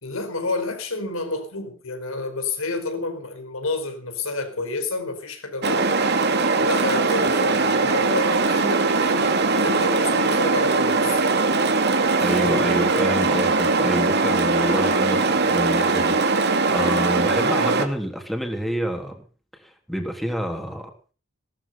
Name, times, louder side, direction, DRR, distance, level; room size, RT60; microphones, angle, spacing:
voice 1, 0.0-5.9 6.6-11.2 12.4-12.6, left 3 dB, 85° left, 4.7 m, -29 dB
sound 1, 5.6-17.8, right 3 dB, 55° right, 2.4 m, -20 dB
voice 2, 12.2-19.2 19.6-20.9, equal, ahead, 3.4 m, -28 dB
18.0 x 13.5 x 5.6 m
head